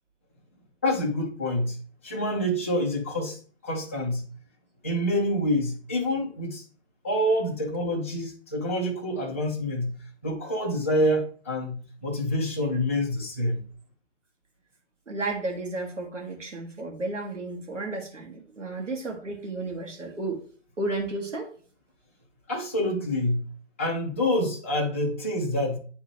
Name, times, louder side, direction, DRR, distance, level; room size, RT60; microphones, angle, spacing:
voice 1, 0.8-1.8 2.0-4.3 4.8-6.6 7.0-13.7 22.5-23.5 23.8-25.8, left 1 dB, 15° left, 0.3 m, -27 dB
voice 2, 15.1-20.4 20.8-21.5, right 2 dB, 90° right, 2.0 m, -33 dB
9.1 x 3.6 x 3.1 m
figure-of-eight pair, 135°, 36 cm